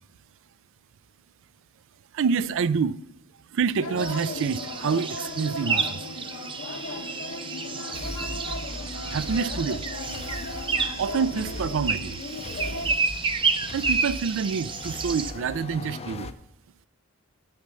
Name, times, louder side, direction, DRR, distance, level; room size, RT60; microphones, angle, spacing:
voice 1, 2.1-3.0 3.5-6.0 9.1-9.9 11.0-12.2 13.7-16.3, right 6 dB, 65° right, 0.4 m, -27 dB
sound 1, 3.8-12.9, left 2 dB, 70° left, 1.0 m, -37 dB
sound 2, 4.0-15.3, right 5 dB, 25° right, 0.7 m, -31 dB
sound 3, 7.9-16.3, left 2 dB, 30° left, 0.5 m, -39 dB
8.4 x 6.5 x 6.7 m
head